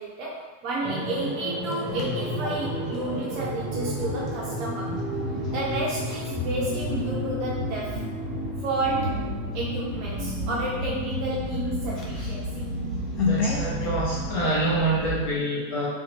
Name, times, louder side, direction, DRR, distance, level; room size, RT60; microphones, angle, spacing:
voice 1, 0.0-5.0 5.5-8.0 8.6-9.2 9.5-12.7, right 2 dB, 40° right, -5 dB, 0.5 m, -31 dB
sound 1, 0.8-15.3, equal, 25° right, 0.9 m, -31 dB
sound 2, 1.6-3.2 4.2-8.4 8.9-9.2 9.5-10.2 10.5-10.6 10.9-13.9, left 5 dB, 30° left, 0.5 m, -35 dB
voice 2, 13.3-15.9, right 2 dB, 45° left, -7 dB, 0.8 m, -26 dB
2.8 x 2.1 x 2.7 m, 1.3 s
figure-of-eight pair, 90°, 0 cm